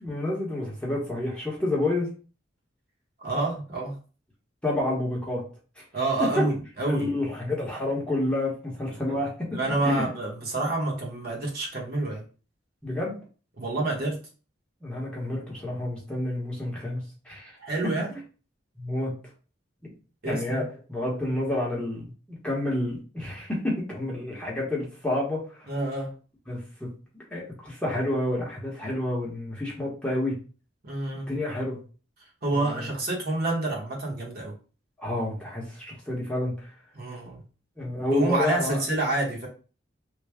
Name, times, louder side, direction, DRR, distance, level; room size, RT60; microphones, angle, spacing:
voice 1, 0.0-2.1 4.6-5.5 5.8-5.9 6.2-6.4 6.9-9.6 9.8-10.1 12.8-13.2 14.8-17.0 17.2-17.6 18.8-19.1 20.2-22.1 22.4-25.7 26.5-30.4 31.3-31.8 32.5-32.9 35.0-36.7 37.8-38.8, left 1 dB, 5° left, -5 dB, 1.0 m, -29 dB
voice 2, 3.2-4.0 5.9-7.1 9.0-9.2 9.5-12.2 13.6-14.2 17.6-18.2 20.2-20.6 25.7-26.1 30.8-31.3 32.4-34.5 36.9-37.4 38.1-39.5, right 2 dB, 55° right, -2 dB, 1.1 m, -28 dB
3.3 x 2.3 x 3.4 m, 0.37 s
head